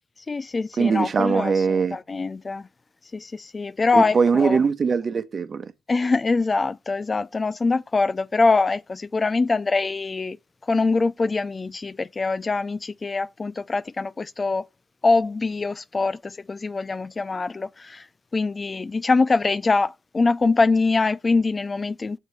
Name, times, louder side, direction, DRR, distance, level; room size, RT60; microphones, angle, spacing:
voice 1, 0.3-2.7 3.1-4.6 5.9-10.4 10.7-14.7 15.0-18.0 18.3-22.2, left 3 dB, 35° left, 0.4 m, -23 dB
voice 2, 0.8-2.0 3.9-5.7, right 5 dB, 50° right, 1.0 m, -21 dB
6.4 x 4.9 x 4.1 m
hypercardioid pair, 50°, 0 cm